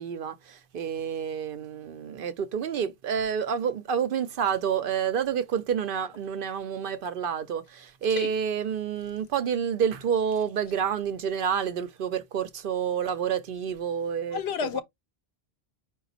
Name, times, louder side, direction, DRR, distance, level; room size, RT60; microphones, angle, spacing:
voice 1, 0.0-14.4, right 7 dB, 65° right, 0.7 m, -29 dB
voice 2, 14.3-14.8, left 7 dB, 85° left, 0.9 m, -30 dB
4.9 x 2.4 x 3.9 m
omnidirectional pair, 1.0 m